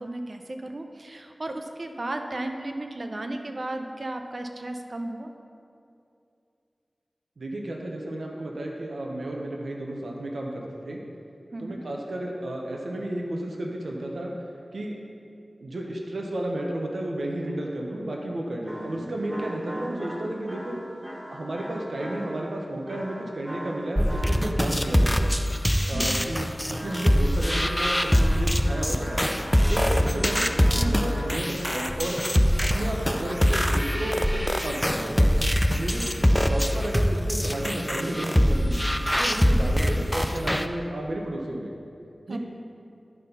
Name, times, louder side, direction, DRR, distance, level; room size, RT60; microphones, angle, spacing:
voice 1, 0.0-5.3 11.5-11.8 18.8-19.1 25.9-26.2 39.3-39.6 42.3-42.4, right 1 dB, 55° right, 5 dB, 0.7 m, -34 dB
voice 2, 7.4-11.0 11.6-14.3 14.7-15.0 15.6-20.8 21.3-25.3 25.9-29.2 29.7-32.2 32.6-35.3 35.7-41.7 42.3-42.4, right 1 dB, 85° right, -1 dB, 0.9 m, -32 dB
sound 1, 18.7-24.8 26.7-32.3 32.6-33.4, equal, 15° right, 1.4 m, -39 dB
sound 2, 24.0-40.7, equal, 10° left, 0.4 m, -23 dB
11.0 x 4.1 x 5.6 m, 2.6 s
cardioid pair, 45°, 0 cm